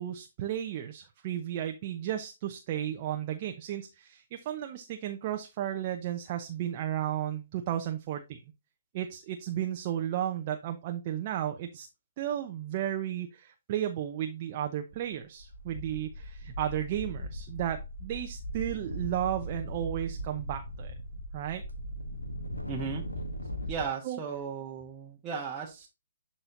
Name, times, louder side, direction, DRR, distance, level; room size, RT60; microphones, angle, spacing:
voice 1, 0.0-8.4 8.9-11.9 12.2-20.9 21.3-21.6 24.0-24.2, right 11 dB, 35° right, 5 dB, 0.8 m, -34 dB
sound 1, 14.9-15.1 15.4-23.9, equal, 85° left, 1.4 m, -39 dB
voice 2, 22.7-23.0 23.7-25.9, right 6 dB, 20° right, -2 dB, 1.2 m, -36 dB
12.0 x 4.3 x 2.6 m, 0.26 s
figure-of-eight pair, 130°, 0 cm